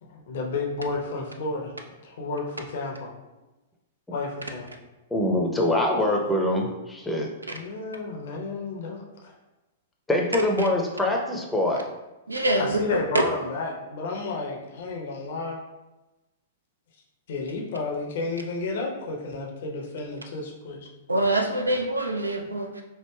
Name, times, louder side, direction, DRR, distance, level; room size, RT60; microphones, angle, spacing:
voice 1, 0.0-1.7 2.0-3.1 4.1-4.7 7.5-9.3 12.5-15.6 17.3-20.9, left 3 dB, 60° left, 0 dB, 0.7 m, -32 dB
voice 2, 5.1-7.3 10.1-11.9, left 1 dB, 5° left, 0 dB, 0.6 m, -24 dB
voice 3, 12.3-13.0 21.1-22.8, right 1 dB, 85° right, 3 dB, 0.4 m, -25 dB
4.5 x 2.6 x 2.2 m, 1.0 s
figure-of-eight pair, 105°, 0 cm